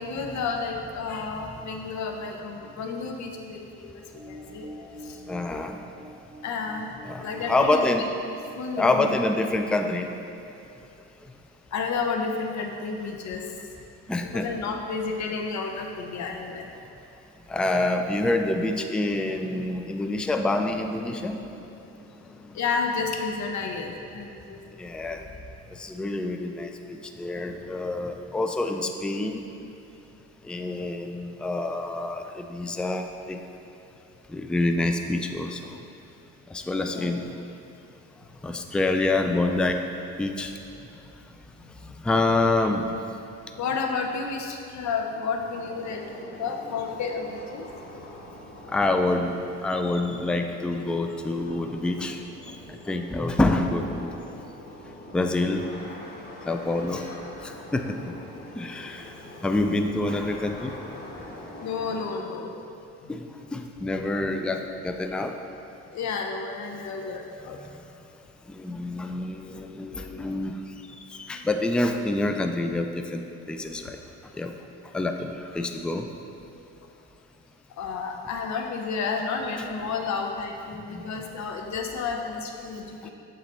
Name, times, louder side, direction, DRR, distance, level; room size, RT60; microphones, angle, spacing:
voice 1, 0.0-4.7 5.0-5.2 6.4-7.8 8.6-9.2 11.7-13.5 14.2-16.7 22.5-24.6 25.1-25.2 36.8-37.1 40.9-41.0 41.6-41.9 43.6-47.6 56.5-56.9 59.2-59.4 61.6-62.5 63.0-63.1 65.9-67.6 71.3-71.4 77.8-83.1, left 5 dB, 65° left, 3 dB, 0.8 m, -31 dB
sound 1, 4.1-8.9, equal, 20° right, 1.1 m, -46 dB
voice 2, 5.3-5.8 7.0-8.1 8.8-10.1 14.1-14.5 17.5-21.6 22.4-22.5 24.8-25.2 25.8-29.4 30.4-33.4 34.3-35.7 36.5-37.3 38.4-39.8 40.2-40.5 42.0-43.0 48.7-49.4 49.6-52.6 52.9-54.1 55.1-55.7 56.5-57.1 57.4-58.1 58.6-59.1 59.4-60.7 63.1-65.4 67.6-67.8 68.5-70.6 70.9-74.0 74.4-74.5 74.9-76.1 79.6-79.7 80.9-81.0 83.0-83.1, left 2 dB, 5° left, 5 dB, 0.3 m, -27 dB
sound 2, 45.5-62.2, left 1 dB, 30° left, 1.3 m, -44 dB
7.5 x 3.9 x 4.2 m, 2.7 s
cardioid pair, 90°, 30 cm